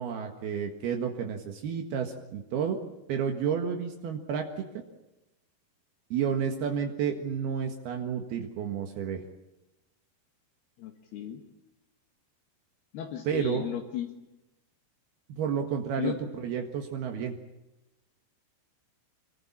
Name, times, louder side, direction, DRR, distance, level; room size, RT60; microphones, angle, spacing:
voice 1, 0.0-2.8 3.1-4.7 6.1-9.2 13.3-13.7 15.4-17.3, right 7 dB, 75° right, 3 dB, 3.6 m, -31 dB
voice 2, 10.8-11.4 12.9-14.1 16.0-16.1, left 11 dB, 75° left, 3 dB, 3.6 m, -35 dB
26.0 x 21.5 x 8.8 m, 0.97 s
omnidirectional pair, 4.7 m